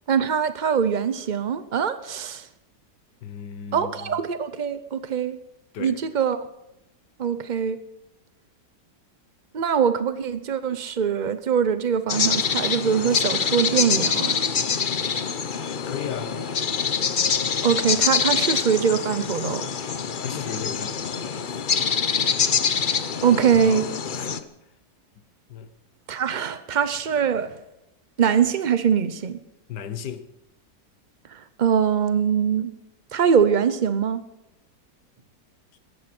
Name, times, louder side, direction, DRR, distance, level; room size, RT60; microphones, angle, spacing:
voice 1, 0.1-2.5 3.7-5.4 5.8-6.4 7.2-7.8 9.5-14.4 17.6-19.7 23.2-23.8 26.1-27.5 28.2-29.4 31.3-32.7 33.1-34.2, right 7 dB, 70° right, 0.4 m, -23 dB
voice 2, 3.2-4.2 5.7-6.0 15.8-16.4 20.1-21.6 23.2-23.9 24.1-24.5 25.5-25.7 29.7-30.3, left 8 dB, 75° left, 1.5 m, -36 dB
sound 1, 12.1-24.4, left 6 dB, 45° left, 0.6 m, -25 dB
17.5 x 14.0 x 6.0 m
omnidirectional pair, 1.9 m